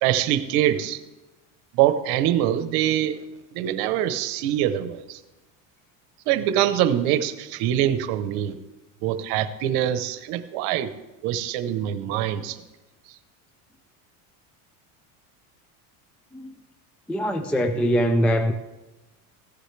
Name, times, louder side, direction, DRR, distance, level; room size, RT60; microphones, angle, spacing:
voice 1, 0.0-1.0 1.7-3.2 3.5-5.2 6.3-8.6 9.0-10.9 11.2-12.6, right 11 dB, 70° right, 12 dB, 1.0 m, -24 dB
voice 2, 17.1-18.5, equal, 5° left, 8 dB, 0.3 m, -22 dB
15.0 x 10.0 x 3.3 m, 1.1 s
cardioid pair, 135°, 39 cm